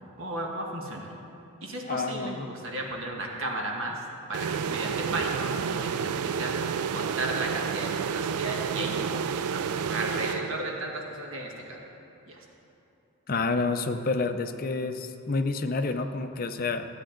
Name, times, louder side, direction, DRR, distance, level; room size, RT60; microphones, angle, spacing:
voice 1, 0.2-1.1 1.6-4.0 4.3-6.5 6.9-9.6 9.9-11.8 12.3-12.4, right 2 dB, 65° right, 0 dB, 1.3 m, -34 dB
voice 2, 1.9-2.5 13.3-16.9, left 3 dB, 40° left, 7 dB, 0.5 m, -29 dB
sound 1, 4.3-11.0, right 6 dB, 90° right, 0.4 m, -30 dB
15.0 x 8.5 x 3.8 m, 2.8 s
head